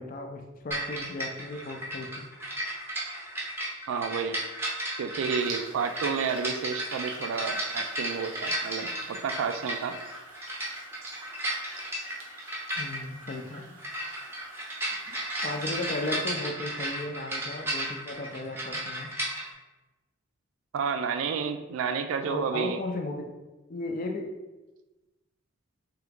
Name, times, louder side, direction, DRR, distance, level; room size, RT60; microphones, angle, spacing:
voice 1, 0.0-2.3 12.8-13.7 15.1-19.1 22.2-23.3 23.7-24.3, left 2 dB, 40° left, 4 dB, 0.4 m, -35 dB
sound 1, 0.7-19.5, right 1 dB, 10° right, 0.6 m, -34 dB
voice 2, 3.9-4.4 5.0-10.0 20.7-22.8, right 6 dB, 70° right, 8 dB, 0.3 m, -30 dB
sound 2, 5.4-16.1, right 2 dB, 90° right, 1.1 m, -47 dB
3.7 x 2.9 x 3.5 m, 1.1 s
head